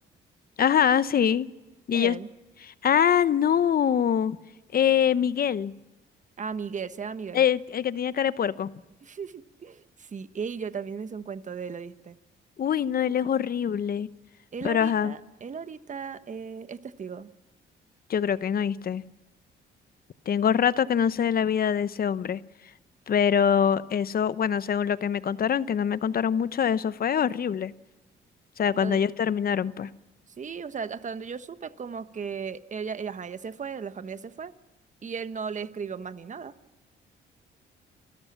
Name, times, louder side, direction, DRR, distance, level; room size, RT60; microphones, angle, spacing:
voice 1, 0.6-1.5 1.9-2.2 2.8-4.4 4.7-5.7 7.3-8.7 12.6-14.1 14.6-15.1 18.1-19.0 20.3-22.4 23.1-27.7 28.6-29.9, left 8 dB, 50° left, 16 dB, 0.8 m, -24 dB
voice 2, 1.9-2.3 6.4-7.4 9.0-12.2 14.5-17.3 28.7-29.0 30.4-34.5 35.0-36.5, right 6 dB, 40° right, 12 dB, 1.2 m, -36 dB
29.0 x 14.0 x 7.3 m, 1.1 s
cardioid pair, 90°, 20 cm